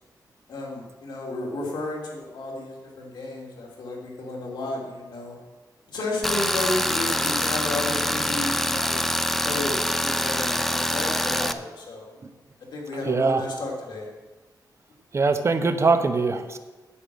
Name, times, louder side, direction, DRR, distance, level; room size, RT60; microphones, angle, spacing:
voice 1, 0.5-5.3 5.9-9.0 9.3-12.1 12.7-14.1, left 2 dB, 90° left, -2 dB, 3.2 m, -32 dB
Tools, 6.2-11.5, equal, 5° left, 0.6 m, -25 dB
voice 2, 13.0-13.4 15.1-16.6, right 4 dB, 40° right, 8 dB, 0.9 m, -22 dB
10.0 x 8.6 x 6.4 m, 1.2 s
wide cardioid pair, 130°, 7 cm